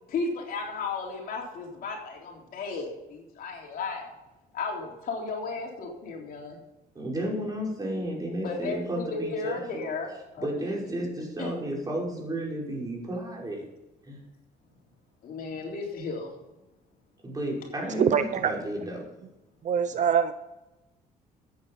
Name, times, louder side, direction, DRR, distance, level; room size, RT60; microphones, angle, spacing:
voice 1, 0.1-4.1 4.5-6.6 8.4-10.7 11.4-11.6 15.2-16.3, left 4 dB, 60° left, 0 dB, 3.7 m, -34 dB
voice 2, 7.0-9.9 10.4-13.6 14.1-14.2 17.2-19.0, right 1 dB, 20° right, -3 dB, 5.4 m, -32 dB
voice 3, 17.9-18.5 19.6-20.3, right 8 dB, 45° right, 11 dB, 0.7 m, -24 dB
13.5 x 8.7 x 5.6 m, 0.99 s
cardioid pair, 110°, 17 cm